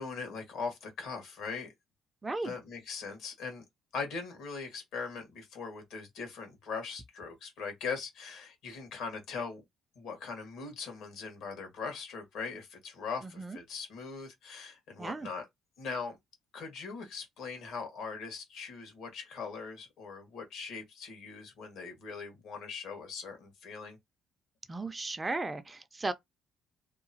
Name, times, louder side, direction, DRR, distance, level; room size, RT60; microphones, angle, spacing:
voice 1, 0.0-1.7 2.4-3.6 3.9-9.6 9.9-15.4 15.8-16.2 16.5-24.0, left 5 dB, 75° left, 1.3 m, -40 dB
voice 2, 2.2-2.5 13.2-13.6 15.0-15.3 24.7-26.1, right 3 dB, 20° right, 0.4 m, -35 dB
2.8 x 2.1 x 2.7 m
cardioid pair, 85°, 0 cm